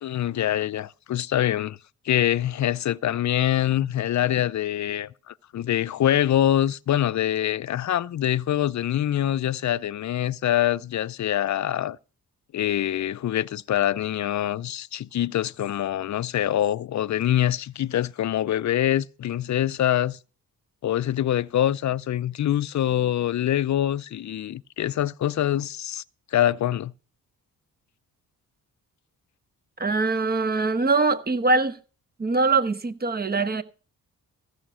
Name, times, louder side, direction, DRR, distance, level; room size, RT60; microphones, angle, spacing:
voice 1, 0.0-1.8 2.1-12.0 12.5-20.2 20.8-26.0 26.3-26.9, left 11 dB, 50° left, 0.5 m, -24 dB
voice 2, 29.8-31.8 32.2-33.6, right 3 dB, 25° right, 1.0 m, -23 dB
15.0 x 6.5 x 6.2 m
cardioid pair, 80°, 36 cm